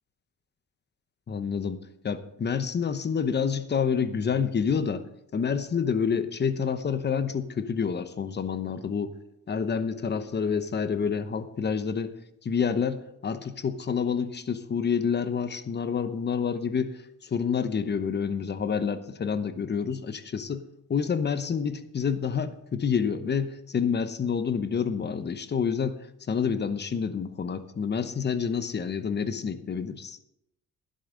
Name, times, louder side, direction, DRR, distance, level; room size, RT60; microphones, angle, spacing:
voice 1, 1.3-5.0 5.3-9.1 9.5-12.1 12.4-20.6 20.9-26.0 26.3-30.2, left 6 dB, 35° left, 12 dB, 0.9 m, -28 dB
12.5 x 10.5 x 3.9 m, 0.86 s
cardioid pair, 90°, 30 cm